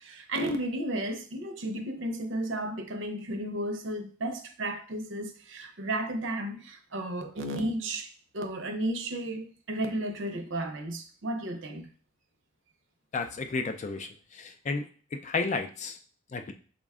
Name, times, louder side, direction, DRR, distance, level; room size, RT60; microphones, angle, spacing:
voice 1, 0.0-11.9, right 1 dB, 65° right, 0.6 m, -33 dB
voice 2, 13.1-14.9 15.1-16.0 16.3-16.5, left 4 dB, 35° left, 0.3 m, -32 dB
4.9 x 2.2 x 3.5 m
head